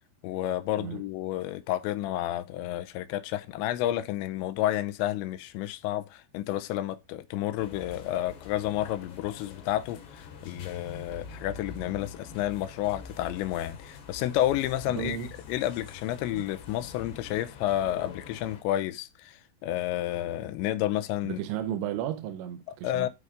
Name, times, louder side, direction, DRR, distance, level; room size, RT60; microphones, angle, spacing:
voice 1, 0.2-15.2 15.5-21.4 22.8-23.1, left 13 dB, 85° left, 3.0 m, -30 dB
sound 1, 7.6-18.6, left 5 dB, 70° left, 4.1 m, -45 dB
voice 2, 14.9-15.3 16.3-16.4 21.2-23.1, right 10 dB, 90° right, 3.2 m, -34 dB
12.0 x 5.1 x 3.5 m
omnidirectional pair, 5.1 m